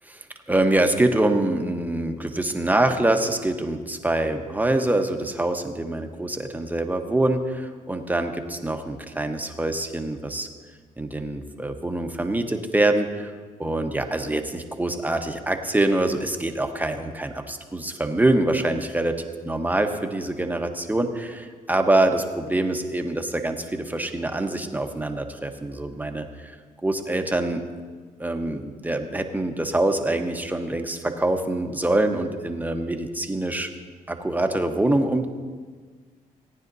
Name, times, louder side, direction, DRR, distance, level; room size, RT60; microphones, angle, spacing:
voice 1, 0.1-10.5 11.0-13.3 13.6-26.5 26.8-27.7 28.2-33.7 34.1-35.3, right 1 dB, 10° right, 5 dB, 1.0 m, -25 dB
18.0 x 9.7 x 2.7 m, 1.5 s
supercardioid pair, 70°, 16 cm